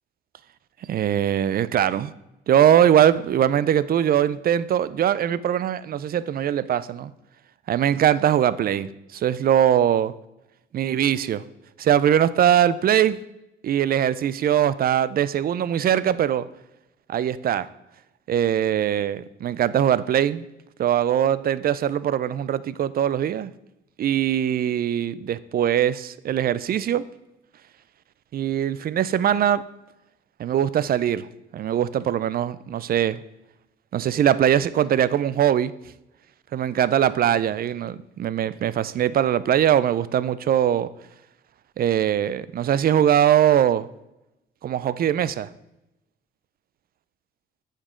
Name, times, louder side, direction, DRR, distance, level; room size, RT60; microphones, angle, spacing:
voice 1, 0.9-2.1 2.5-7.1 7.7-10.1 10.7-11.4 11.8-13.2 13.6-16.5 17.1-17.7 18.3-20.4 20.8-23.5 24.0-27.0 28.3-29.6 30.4-31.3 31.5-33.2 33.9-35.7 36.5-40.9 41.8-43.9 44.6-45.5, right 10 dB, 50° right, 17 dB, 0.4 m, -21 dB
8.6 x 5.2 x 3.7 m, 0.91 s
cardioid pair, 90°, 20 cm